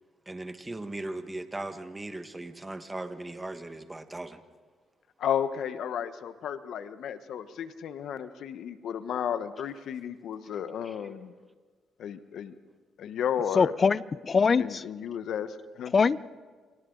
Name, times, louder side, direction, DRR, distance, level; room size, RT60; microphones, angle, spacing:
voice 1, 0.3-4.4 10.8-10.9, right 2 dB, 15° right, 8 dB, 1.6 m, -38 dB
voice 2, 5.2-11.4 12.0-12.5 13.0-13.7 14.6-15.9, left 8 dB, 70° left, 11 dB, 1.2 m, -33 dB
voice 3, 13.6-14.8 15.9-16.2, left 5 dB, 40° left, 18 dB, 0.6 m, -23 dB
29.5 x 25.0 x 4.0 m, 1.5 s
cardioid pair, 90°, 0 cm